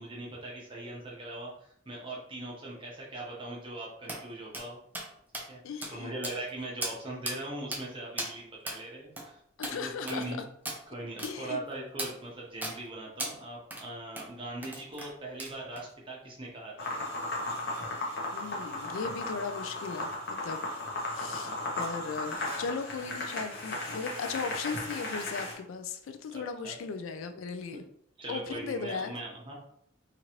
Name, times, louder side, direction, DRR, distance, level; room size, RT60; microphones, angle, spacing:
voice 1, 0.0-4.8 5.5-5.6 5.9-9.4 9.7-10.4 10.9-16.9 21.4-21.7 26.3-26.8 27.7-27.8 28.2-29.5, right 2 dB, 25° right, -3 dB, 0.8 m, -40 dB
sound 1, 4.1-4.2 4.5-4.7 4.9-5.1 5.3-5.5 5.8-5.9 6.2-6.5 6.8-7.0 7.3-7.4 7.7-7.8 8.2-8.3 8.7-8.8 9.2-9.3 9.6-9.8 10.1-10.3 10.7-10.8 11.2-11.3 12.0-12.1 12.6-12.8 13.2-13.3 13.7-13.9 14.2-14.3 14.6-15.1 15.4-15.8, right 2 dB, 10° right, 0.4 m, -36 dB
voice 2, 5.6-6.2 9.6-10.3 11.2-11.6 18.3-20.7 21.0-27.8 28.3-29.1, left 5 dB, 85° left, 8 dB, 0.3 m, -37 dB
sound 2, 16.8-25.5, left 2 dB, 55° left, 0.8 m, -36 dB
2.9 x 2.5 x 2.8 m, 0.70 s
head